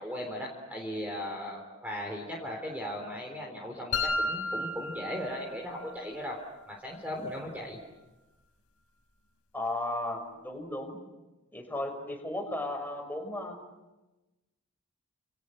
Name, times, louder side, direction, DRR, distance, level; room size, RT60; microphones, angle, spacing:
voice 1, 0.0-6.4 6.7-7.8, left 1 dB, 5° right, 0 dB, 3.8 m, -37 dB
sound 1, 3.9-5.9, left 2 dB, 80° left, 3.6 m, -32 dB
voice 2, 9.5-11.0 11.5-13.6, left 1 dB, 10° left, 4 dB, 5.3 m, -35 dB
29.5 x 29.0 x 6.5 m, 1.1 s
head